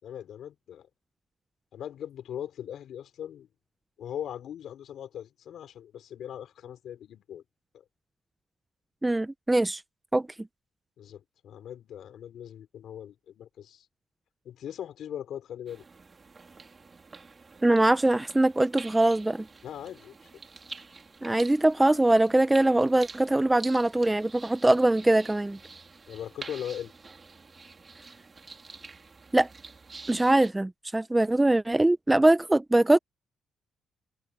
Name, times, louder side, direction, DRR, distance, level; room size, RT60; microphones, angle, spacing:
voice 1, 0.0-0.9 1.7-3.5 4.0-7.4 7.7-7.8 11.0-13.9 14.4-15.8 19.6-20.1 26.1-26.9, left 10 dB, 70° left, 4.6 m, -40 dB
voice 2, 9.0-9.8 10.1-10.3 17.6-19.5 21.2-25.6 29.3-29.5 30.1-33.0, right 1 dB, 10° right, 0.6 m, -22 dB
sound 1, 15.7-30.5, right 4 dB, 30° right, 3.0 m, -47 dB
cardioid pair, 90°, 0 cm